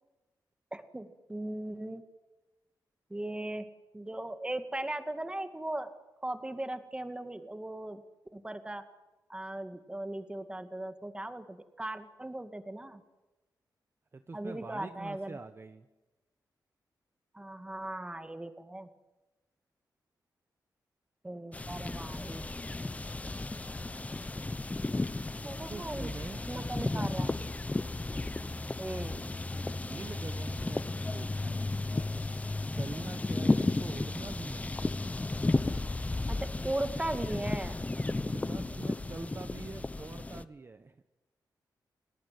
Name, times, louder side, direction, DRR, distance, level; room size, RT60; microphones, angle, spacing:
voice 1, 0.7-2.0 3.1-5.9 6.2-8.0 8.3-8.8 9.3-13.0 14.3-15.4 17.3-18.9 21.2-22.5 25.4-26.2 26.5-27.3 28.8-29.2 36.3-37.8, right 1 dB, 15° right, 9 dB, 2.1 m, -38 dB
voice 2, 14.1-15.9 25.4-27.6 29.8-31.8 32.7-34.7 38.2-41.0, right 3 dB, 35° right, 9 dB, 1.1 m, -45 dB
sound 1, 21.5-40.4, left 2 dB, 20° left, 0.9 m, -34 dB
29.5 x 18.5 x 9.3 m, 1.1 s
wide cardioid pair, 105°, 7 cm